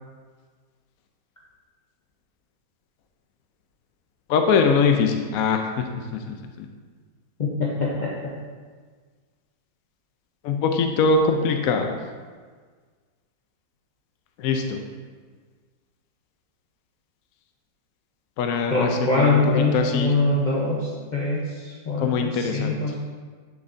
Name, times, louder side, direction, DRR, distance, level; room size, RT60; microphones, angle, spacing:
voice 1, 4.3-6.7 10.4-12.0 14.4-14.8 18.4-20.1 22.0-22.8, left 5 dB, 70° left, 4 dB, 0.8 m, -23 dB
voice 2, 7.4-8.1 18.7-21.4 21.9-23.0, left 2 dB, 45° left, -6 dB, 0.5 m, -23 dB
8.8 x 6.4 x 2.6 m, 1.5 s
omnidirectional pair, 2.0 m